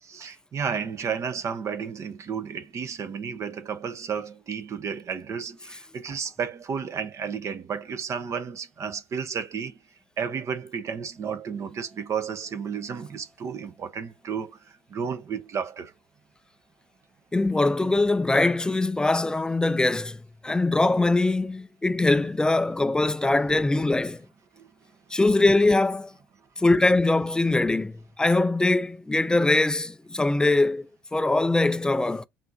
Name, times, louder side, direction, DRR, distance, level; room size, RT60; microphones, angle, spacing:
voice 1, 0.0-9.8 10.2-15.9 24.6-24.7, right 6 dB, 40° right, 0.7 m, -32 dB
voice 2, 17.3-24.2 25.1-26.1 26.6-32.2, left 2 dB, 10° left, 0.4 m, -22 dB
5.6 x 2.6 x 2.6 m
hypercardioid pair, 80°, 8 cm